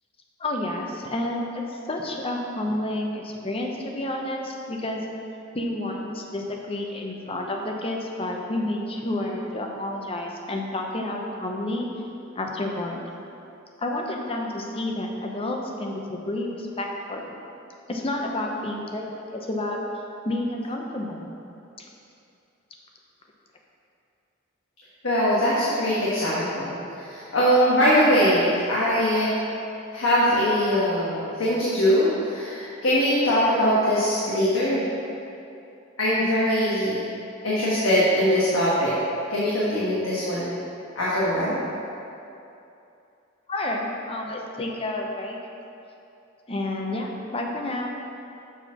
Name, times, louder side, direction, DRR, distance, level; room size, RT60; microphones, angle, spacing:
voice 1, 0.4-5.0 5.5-11.9 12.3-13.0 13.8-17.3 17.9-19.8 20.2-21.3 21.8-21.9 43.5-45.4 46.5-47.9, left 1 dB, 30° left, 1 dB, 0.7 m, -30 dB
voice 2, 25.0-29.3 29.9-34.9 36.0-37.0 37.4-38.9 39.3-40.5 40.9-41.6, equal, 90° left, -8 dB, 1.4 m, -22 dB
7.0 x 4.4 x 5.8 m, 2.7 s
head